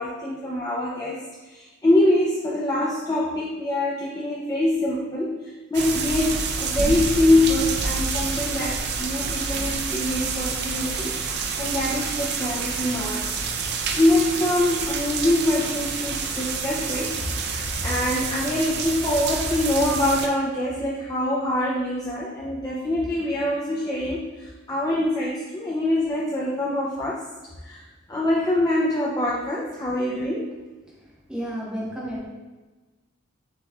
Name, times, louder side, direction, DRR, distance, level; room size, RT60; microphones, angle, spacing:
voice 1, 0.0-13.3 14.0-27.2 27.6-27.8 28.1-30.5, left 1 dB, 15° left, -5 dB, 0.4 m, -24 dB
sound 1, 5.7-20.3, right 5 dB, 50° right, 0.4 m, -28 dB
voice 2, 31.3-32.2, equal, 5° right, -7 dB, 1.1 m, -31 dB
7.0 x 2.9 x 2.3 m, 1.2 s
head